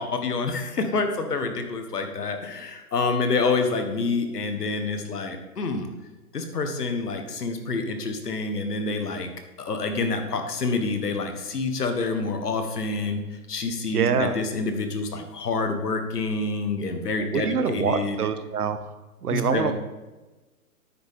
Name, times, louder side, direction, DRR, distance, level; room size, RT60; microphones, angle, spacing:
voice 1, 0.0-5.9 6.3-9.3 9.6-13.2 13.5-18.2 19.3-19.7, left 3 dB, 80° left, 6 dB, 1.6 m, -27 dB
voice 2, 13.9-14.4 17.2-18.9 19.2-19.7, right 7 dB, 75° right, 11 dB, 1.0 m, -25 dB
9.2 x 7.0 x 3.7 m, 1.2 s
hypercardioid pair, 145°, 46 cm